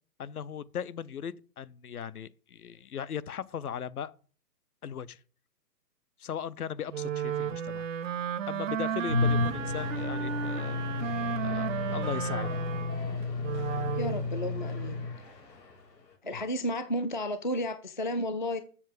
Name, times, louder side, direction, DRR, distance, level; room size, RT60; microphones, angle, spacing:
voice 1, 0.2-4.2 4.8-5.2 6.2-7.9 8.5-10.8 11.4-12.6 16.3-16.4, left 8 dB, 60° left, 0.8 m, -38 dB
Wind instrument woodwind instrument, 6.9-14.3, right 9 dB, 50° right, 0.5 m, -34 dB
sound 1, 9.1-16.1, left 3 dB, 80° left, 3.9 m, -32 dB
voice 2, 13.9-15.0 16.2-18.6, equal, 30° left, 0.4 m, -32 dB
7.3 x 6.8 x 8.1 m
hypercardioid pair, 165°, 49 cm